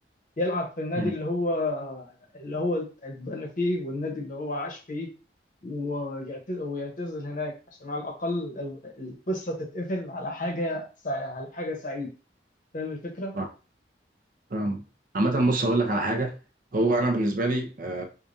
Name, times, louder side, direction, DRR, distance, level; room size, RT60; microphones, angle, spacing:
voice 1, 0.4-5.1 5.6-7.5 7.8-12.1 12.7-13.3, left 1 dB, 50° left, 1.0 m, -31 dB
voice 2, 14.5-14.8 15.1-16.4 16.7-18.0, right 2 dB, 50° right, 0.6 m, -25 dB
5.0 x 2.3 x 2.6 m
head